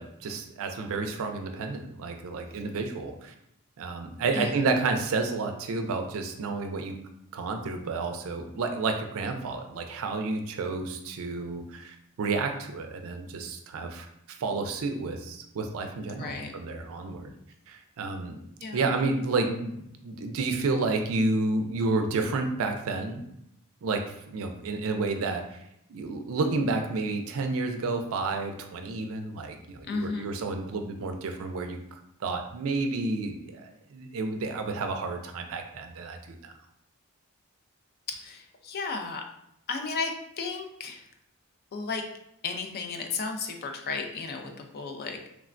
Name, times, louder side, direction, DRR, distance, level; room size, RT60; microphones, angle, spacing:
voice 1, 0.0-3.3 3.8-7.0 7.3-17.3 17.7-18.4 18.7-23.2 23.8-25.6 25.9-36.5, right 3 dB, 65° right, 5 dB, 0.4 m, -30 dB
voice 2, 16.2-16.5 18.6-18.8 29.9-30.3 38.1-39.2 39.7-41.0 41.7-42.0 42.4-45.3, left 4 dB, 45° left, 4 dB, 0.4 m, -34 dB
3.2 x 2.1 x 2.4 m, 0.76 s
head